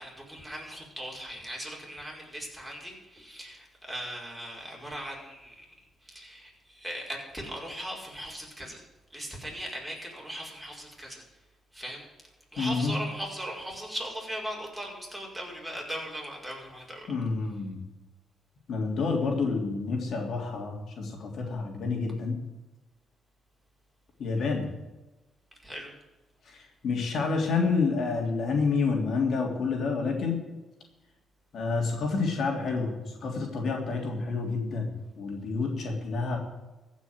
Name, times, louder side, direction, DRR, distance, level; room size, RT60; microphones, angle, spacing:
voice 1, 0.0-5.7 6.0-8.8 9.1-11.2 11.7-12.0 12.5-17.1 24.4-24.5 25.6-25.9, equal, ahead, -2 dB, 5.3 m, -39 dB
voice 2, 12.6-13.0 17.1-17.8 18.7-22.4 24.2-24.7 26.5-30.4 31.5-36.4, left 4 dB, 60° left, 1 dB, 3.2 m, -29 dB
15.0 x 6.2 x 9.6 m, 1.1 s
cardioid pair, 90°, 0 cm